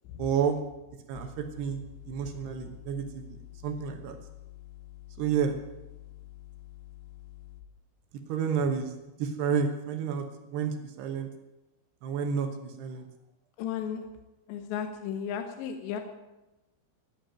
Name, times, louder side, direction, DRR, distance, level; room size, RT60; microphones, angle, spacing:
voice 1, 0.2-0.6 1.1-1.8 2.1-3.4 3.6-4.2 5.2-5.6 8.3-8.9 9.2-11.3 12.0-13.1, right 7 dB, 70° right, 6 dB, 2.7 m, -30 dB
sound 1, 1.1-7.6, left 15 dB, 90° left, 2.2 m, -48 dB
voice 2, 13.6-14.1 14.5-16.0, left 8 dB, 75° left, 7 dB, 2.8 m, -34 dB
17.5 x 9.0 x 9.0 m, 1.0 s
omnidirectional pair, 6.0 m